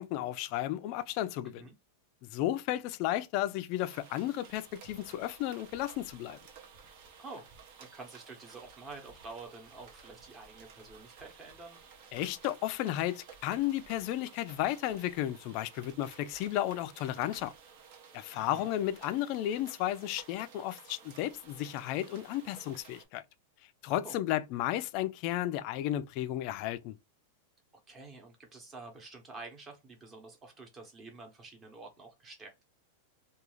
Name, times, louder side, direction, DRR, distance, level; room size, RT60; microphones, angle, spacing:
voice 1, 0.0-1.7 2.3-6.4 12.1-17.5 18.1-23.2 23.8-27.0, left 13 dB, 45° left, 0.3 m, -33 dB
sound 1, 3.8-23.1, right 6 dB, 50° right, 0.7 m, -55 dB
voice 2, 7.8-11.8 18.3-18.7 24.0-24.1 27.9-32.6, right 3 dB, 20° right, 0.9 m, -48 dB
2.4 x 2.3 x 3.0 m
supercardioid pair, 150°, 0 cm